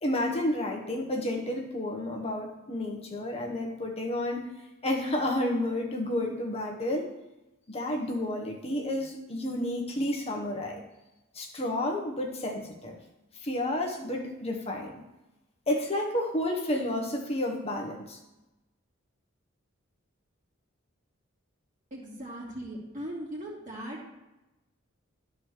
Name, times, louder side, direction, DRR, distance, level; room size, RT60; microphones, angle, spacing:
voice 1, 0.0-4.5 4.8-7.1 7.7-10.8 11.3-13.0 13.4-15.0 15.7-18.2, left 1 dB, 30° left, 1 dB, 1.1 m, -31 dB
voice 2, 21.9-24.1, right 1 dB, 40° right, -5 dB, 2.6 m, -39 dB
11.5 x 4.4 x 6.5 m, 0.99 s
head